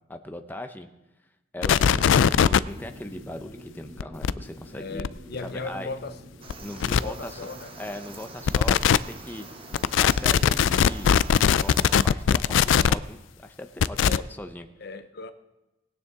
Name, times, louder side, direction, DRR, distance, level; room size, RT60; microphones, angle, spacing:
voice 1, 0.1-0.9 1.5-5.1 5.4-5.9 6.6-7.4 7.8-9.5 9.9-11.1 11.5-14.7, left 1 dB, 10° left, 0.6 m, -39 dB
sound 1, 1.6-2.6 4.0-4.3 5.0-5.1 6.5-6.6 6.8-7.0 8.5-9.0 9.7-13.0 13.8-14.2, left 8 dB, 75° left, 0.3 m, -19 dB
sound 2, 2.2-10.7, equal, 65° right, 2.9 m, -47 dB
voice 2, 4.7-6.2 6.8-7.7 14.0-14.2 14.8-15.3, left 3 dB, 55° left, 0.7 m, -36 dB
sound 3, 6.4-12.1, right 4 dB, 30° right, 1.1 m, -45 dB
19.0 x 9.5 x 3.6 m
head